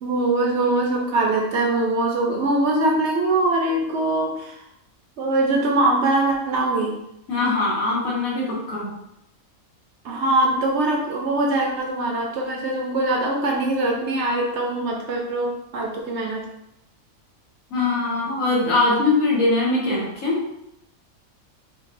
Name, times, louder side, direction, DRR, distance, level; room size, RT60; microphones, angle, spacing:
voice 1, 0.0-4.6 5.2-6.9 10.0-16.4, right 2 dB, 65° right, 0 dB, 0.8 m, -22 dB
voice 2, 7.3-8.9 17.7-20.4, left 3 dB, 85° left, -5 dB, 1.5 m, -22 dB
4.5 x 2.2 x 2.6 m, 0.81 s
omnidirectional pair, 1.5 m